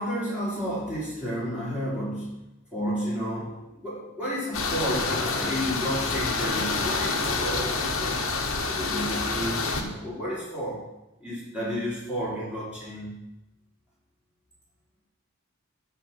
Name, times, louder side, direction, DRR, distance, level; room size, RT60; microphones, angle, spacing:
voice 1, 0.0-2.4 2.7-8.3 8.5-10.9 11.2-13.2, equal, 5° right, -8 dB, 3.7 m, -31 dB
sound 1, 4.5-9.8, left 3 dB, 65° left, 1.3 m, -28 dB
12.5 x 4.4 x 6.0 m, 0.93 s
head